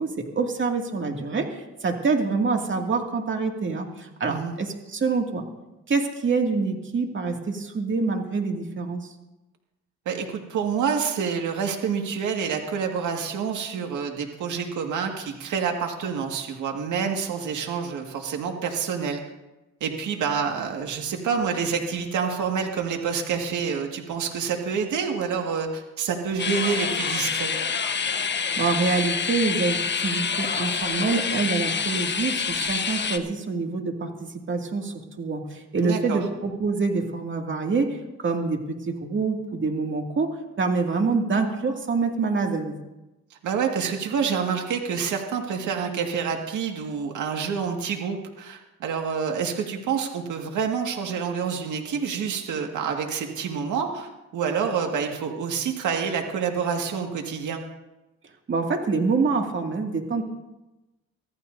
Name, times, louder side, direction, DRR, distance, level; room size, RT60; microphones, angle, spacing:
voice 1, 0.0-5.4 5.9-9.1 28.6-42.7 58.5-60.2, right 4 dB, 40° right, 2 dB, 2.3 m, -26 dB
voice 2, 10.1-19.2 19.8-27.5 35.8-36.2 43.3-57.6, right 6 dB, 75° right, 3 dB, 1.9 m, -28 dB
sound 1, 26.4-33.2, left 6 dB, 35° left, 1.2 m, -27 dB
24.5 x 15.0 x 2.7 m, 1.0 s
cardioid pair, 90°, 30 cm